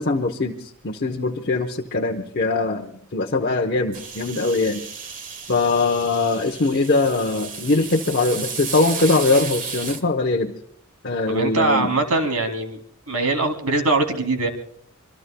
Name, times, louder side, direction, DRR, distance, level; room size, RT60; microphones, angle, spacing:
voice 1, 0.0-4.8 5.5-10.5 11.0-11.9, left 3 dB, 45° left, 2 dB, 0.9 m, -22 dB
sound 1, 3.9-10.0, right 6 dB, 40° right, 1.5 m, -33 dB
voice 2, 11.3-12.8 13.1-14.5, right 2 dB, 75° right, 5 dB, 3.0 m, -22 dB
26.5 x 24.0 x 2.3 m, 0.66 s
head